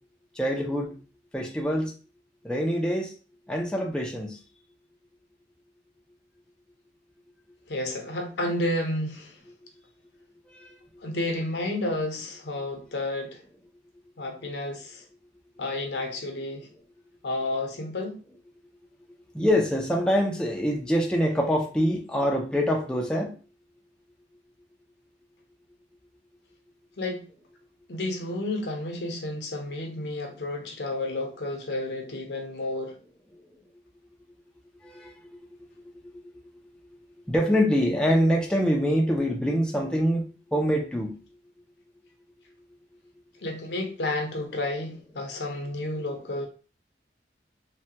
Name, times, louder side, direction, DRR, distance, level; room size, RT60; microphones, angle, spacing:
voice 1, 0.4-0.9 1.3-1.9 2.4-3.1 3.5-4.4 10.5-10.7 19.3-23.3 34.8-35.1 37.3-40.2 40.5-41.2, equal, 5° left, 0.4 m, -25 dB
voice 2, 7.7-9.3 11.0-13.4 14.2-15.0 15.6-16.7 17.2-18.2 27.0-27.2 27.9-33.0 43.4-46.5, left 1 dB, 75° left, 0.7 m, -31 dB
3.2 x 2.1 x 2.8 m
head